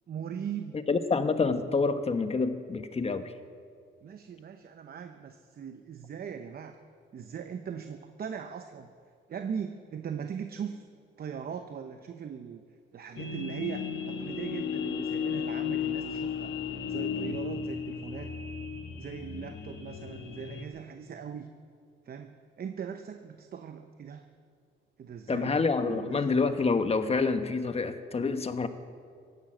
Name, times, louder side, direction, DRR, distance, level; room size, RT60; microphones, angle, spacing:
voice 1, 0.1-0.8 4.0-6.8 7.1-8.9 9.3-10.8 11.2-12.6 12.9-16.5 16.8-18.3 19.0-21.5 22.1-24.3 25.0-26.2, right 7 dB, 50° right, 7 dB, 0.9 m, -39 dB
voice 2, 0.9-3.3 25.3-28.7, left 4 dB, 30° left, 9 dB, 1.2 m, -27 dB
sound 1, 13.2-20.6, left 7 dB, 70° left, 1.5 m, -34 dB
16.5 x 11.5 x 7.8 m, 2.2 s
cardioid pair, 90°, 20 cm